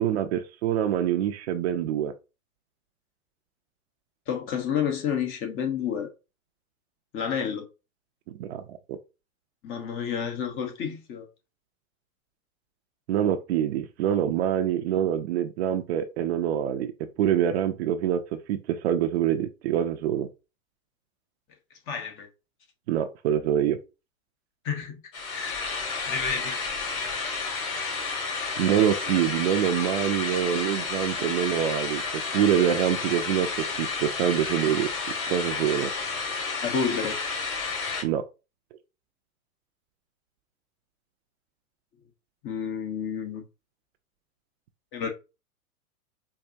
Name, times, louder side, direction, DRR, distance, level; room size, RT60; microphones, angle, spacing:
voice 1, 0.0-2.1 8.3-9.0 13.1-16.9 17.2-18.2 18.5-20.3 22.9-23.8 28.6-32.0 32.3-33.5 33.8-34.9 35.3-35.9 38.0-38.2, right 10 dB, 50° right, 0.5 m, -25 dB
voice 2, 4.3-6.1 7.1-7.6 9.6-11.3 21.9-22.3 24.6-25.0 25.3-25.8 26.1-26.6 36.6-37.2 42.4-43.4 44.9-45.1, left 7 dB, 30° left, 0.9 m, -30 dB
sound 1, 25.1-38.0, left 4 dB, 70° left, 2.2 m, -31 dB
4.6 x 2.7 x 2.6 m
hypercardioid pair, 125°, 43 cm